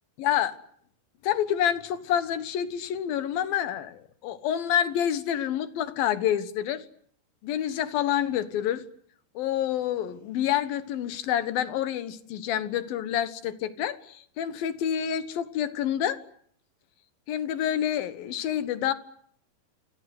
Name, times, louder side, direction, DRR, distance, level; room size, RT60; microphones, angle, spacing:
voice 1, 0.2-0.6 1.2-6.9 7.4-8.9 9.3-16.2 17.3-18.9, left 10 dB, 70° left, 12 dB, 3.1 m, -28 dB
27.5 x 26.0 x 7.9 m, 0.65 s
omnidirectional pair, 4.4 m